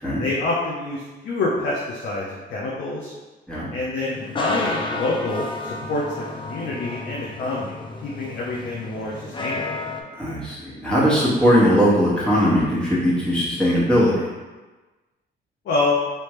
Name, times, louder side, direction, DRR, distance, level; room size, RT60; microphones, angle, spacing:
voice 1, 0.2-3.1 3.7-7.8 8.0-9.7 15.6-15.9, left 2 dB, 65° left, -4 dB, 0.6 m, -27 dB
sound 1, 4.0-10.0, left 2 dB, 25° left, 0.5 m, -32 dB
voice 2, 10.2-14.2, equal, 5° left, -8 dB, 1.4 m, -19 dB
3.4 x 2.7 x 3.1 m, 1.2 s
cardioid pair, 90°, 20 cm